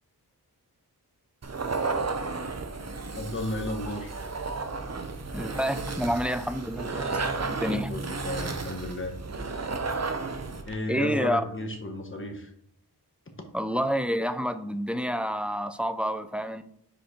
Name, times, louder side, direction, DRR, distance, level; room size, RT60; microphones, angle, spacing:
sound 1, 1.4-10.7, right 3 dB, 40° right, 0.7 m, -33 dB
voice 1, 3.2-4.1 7.6-9.2 10.7-12.5, left 1 dB, 30° left, 4 dB, 1.1 m, -33 dB
voice 2, 5.3-7.9 10.9-11.4 13.5-16.6, equal, 5° right, 10 dB, 0.4 m, -29 dB
5.1 x 4.4 x 5.0 m, 0.68 s
wide cardioid pair, 55°, 41 cm